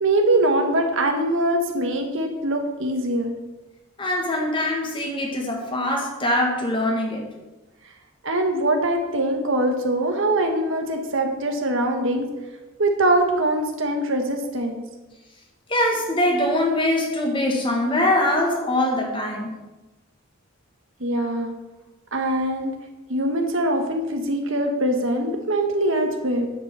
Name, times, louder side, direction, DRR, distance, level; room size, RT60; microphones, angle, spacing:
voice 1, 0.0-3.3 8.2-12.3 12.8-14.8 21.0-21.5 22.1-22.7 23.1-26.5, right 1 dB, 65° right, 4 dB, 1.4 m, -22 dB
voice 2, 4.0-7.3 15.7-19.6, left 1 dB, 25° left, 0 dB, 1.8 m, -23 dB
10.5 x 5.4 x 6.9 m, 1.1 s
head